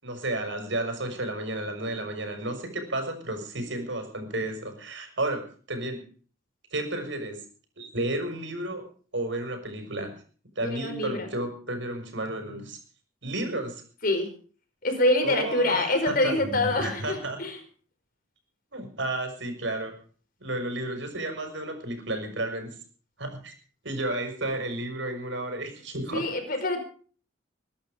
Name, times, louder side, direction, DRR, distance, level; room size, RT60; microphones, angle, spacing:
voice 1, 0.0-6.0 6.7-7.4 7.8-8.9 9.1-10.2 10.6-12.8 13.2-13.8 15.2-17.4 18.7-20.0 20.4-22.8 23.2-23.5 23.8-26.3, right 1 dB, 70° right, 5 dB, 6.2 m, -32 dB
voice 2, 10.6-11.3 14.0-14.3 14.8-17.6 26.1-26.8, left 1 dB, 45° left, 6 dB, 4.9 m, -25 dB
23.0 x 11.0 x 5.2 m, 0.42 s
head